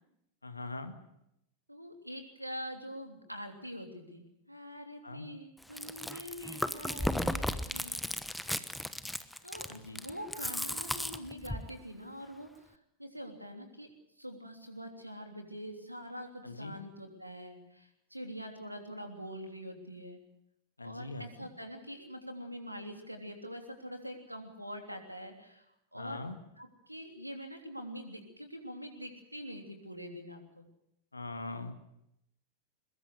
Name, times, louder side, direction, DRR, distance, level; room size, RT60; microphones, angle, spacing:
voice 1, 0.4-1.0 5.0-5.3 9.7-10.0 16.4-16.7 20.8-21.5 25.9-26.4 31.1-31.7, left 2 dB, 80° left, 8 dB, 1.9 m, -41 dB
voice 2, 1.7-8.0 9.4-13.9 14.2-20.2 20.8-25.6 25.9-26.3 26.6-30.7, equal, 90° right, 4 dB, 3.2 m, -44 dB
Chewing mastication, 5.6-11.7, left 1 dB, 5° left, 1.1 m, -35 dB
22.5 x 21.5 x 6.6 m, 0.81 s
figure-of-eight pair, 90°, 0 cm